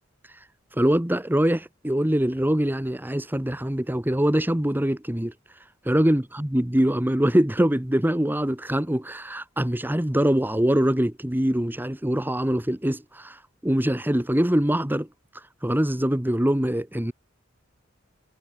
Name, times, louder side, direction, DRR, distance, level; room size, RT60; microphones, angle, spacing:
voice 1, 0.8-5.3 5.9-13.4 13.6-15.1 15.6-17.1, right 1 dB, 10° right, 1.2 m, -23 dB
head